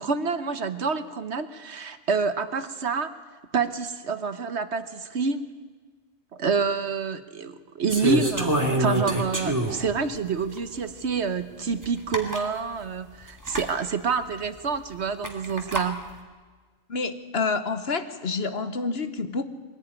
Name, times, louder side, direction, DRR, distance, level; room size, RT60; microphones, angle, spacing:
voice 1, 0.0-3.1 3.5-5.5 6.3-16.0, right 5 dB, 55° right, 11 dB, 1.2 m, -28 dB
sound 1, 7.9-9.9 10.5-10.6 11.8-11.9 12.1-12.5 13.4-13.7 15.2-15.9, right 1 dB, 15° right, 2.3 m, -26 dB
voice 2, 16.9-19.4, left 4 dB, 50° left, 10 dB, 1.2 m, -28 dB
22.0 x 16.0 x 9.7 m, 1.4 s
omnidirectional pair, 1.4 m